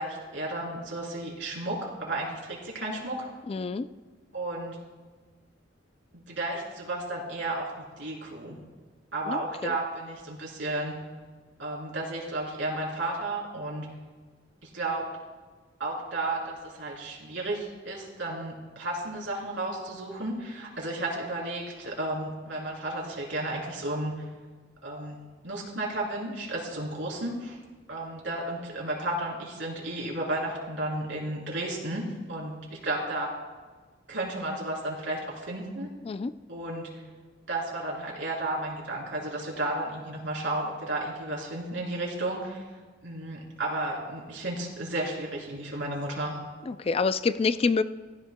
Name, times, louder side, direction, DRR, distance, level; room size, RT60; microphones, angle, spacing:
voice 1, 0.0-3.2 4.3-4.8 6.1-7.7 8.0-8.6 9.1-10.9 11.6-13.9 14.6-15.0 15.8-24.1 24.8-25.2 25.4-27.6 27.9-33.3 34.1-35.9 36.5-36.9 37.5-42.6 43.0-46.4, right 2 dB, 85° right, -3 dB, 3.5 m, -33 dB
voice 2, 3.5-3.9 9.3-9.8 36.0-36.3 46.7-47.8, left 4 dB, 30° left, 13 dB, 0.3 m, -27 dB
15.5 x 14.5 x 2.2 m, 1.4 s
head